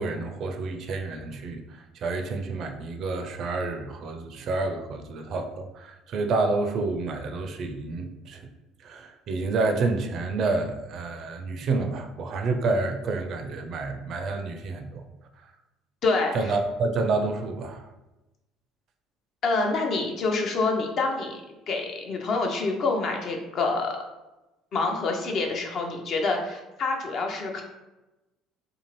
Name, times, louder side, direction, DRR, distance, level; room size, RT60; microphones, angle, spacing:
voice 1, 0.0-8.5 8.8-15.0 15.4-15.5 16.3-17.9, right 3 dB, 55° right, 5 dB, 0.4 m, -29 dB
voice 2, 16.0-16.3 19.4-21.4 21.7-24.0 24.7-27.6, left 3 dB, 55° left, 2 dB, 0.5 m, -26 dB
2.7 x 2.4 x 3.0 m, 1.0 s
hypercardioid pair, 60°, 0 cm